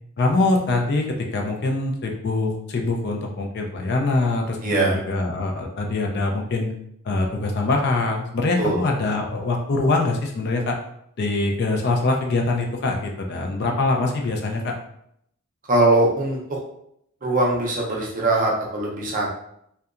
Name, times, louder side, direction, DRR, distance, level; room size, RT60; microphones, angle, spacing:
voice 1, 0.2-6.7 7.0-10.7 11.2-14.7, left 2 dB, 50° left, 2 dB, 0.4 m, -23 dB
voice 2, 4.6-5.0 8.6-8.8 15.7-16.6 17.2-19.3, right 2 dB, 35° right, -2 dB, 0.5 m, -21 dB
2.7 x 2.2 x 2.4 m, 0.73 s
head